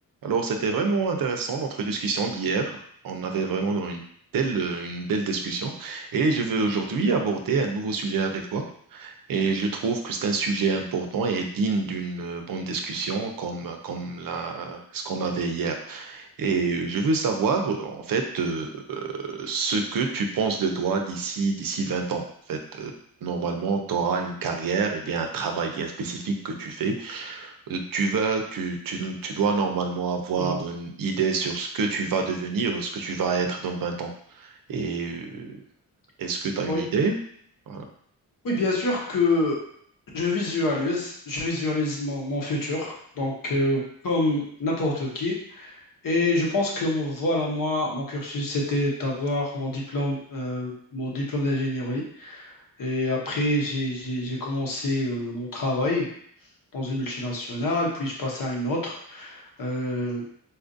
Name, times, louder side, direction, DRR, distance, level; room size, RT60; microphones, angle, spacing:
voice 1, 0.2-2.7 3.0-4.0 4.3-8.6 8.9-22.9 23.2-34.1 34.3-35.6 36.2-37.2 37.7-37.8, right 4 dB, 65° right, 4 dB, 0.6 m, -27 dB
voice 2, 38.4-39.6 40.1-45.7 46.0-52.5 52.8-56.1 56.7-60.2, left 1 dB, 60° left, -2 dB, 1.0 m, -27 dB
4.0 x 2.5 x 2.6 m, 0.65 s
cardioid pair, 110°, 37 cm